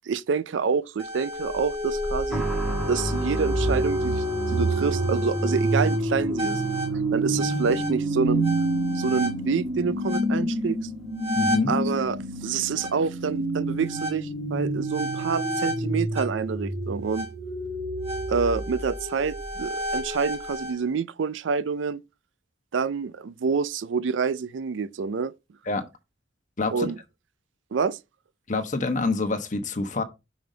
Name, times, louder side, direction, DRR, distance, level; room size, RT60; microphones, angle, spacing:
voice 1, 0.1-2.5 2.9-6.6 7.1-8.5 8.9-10.8 11.7-17.3 18.3-22.0 22.7-25.3 26.7-27.0 27.7-28.0, right 5 dB, 85° right, 0.4 m, -27 dB
sound 1, 1.0-20.7, right 1 dB, 30° right, 2.1 m, -28 dB
sound 2, 2.3-16.7 17.0-17.1 18.1-18.2, right 1 dB, ahead, 1.2 m, -39 dB
voice 2, 11.4-11.7 25.7-25.8 26.6-26.9 28.5-30.0, left 3 dB, 45° left, 1.1 m, -26 dB
5.9 x 5.2 x 3.8 m
head